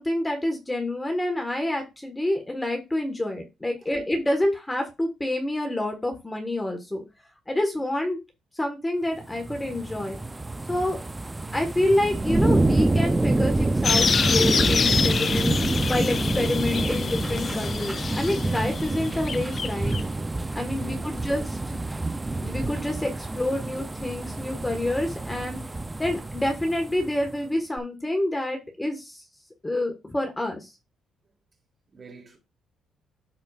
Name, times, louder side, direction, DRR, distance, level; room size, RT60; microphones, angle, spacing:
voice 1, 0.0-7.0 7.5-8.2 8.5-10.2 10.7-11.0 11.5-19.9 20.5-21.7 22.4-25.6 26.0-29.2 29.6-30.7, left 1 dB, 15° left, 1.5 m, -28 dB
sound 1, 9.2-27.3 27.8-27.9, right 2 dB, 15° right, 0.5 m, -27 dB
sound 2, 13.8-20.0, left 5 dB, 45° left, 0.4 m, -27 dB
voice 2, 20.7-21.5 31.9-32.4, right 4 dB, 40° right, 3.0 m, -48 dB
12.5 x 4.4 x 2.5 m
cardioid pair, 90°, 0 cm